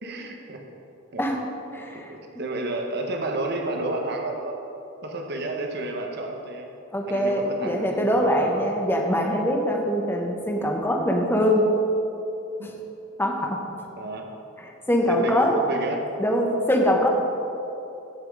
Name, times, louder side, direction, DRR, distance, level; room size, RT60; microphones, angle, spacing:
voice 1, 0.0-0.6 1.1-1.3 1.9-4.6 5.0-6.7 7.1-8.7 12.6-12.7 13.9-14.3 15.1-16.1, right 2 dB, 55° right, 2 dB, 1.3 m, -31 dB
voice 2, 1.7-2.1 6.9-11.7 12.6-12.7 13.2-13.6 14.6-15.5 16.2-17.1, equal, 10° left, 1 dB, 1.2 m, -23 dB
15.5 x 6.1 x 4.9 m, 2.9 s
head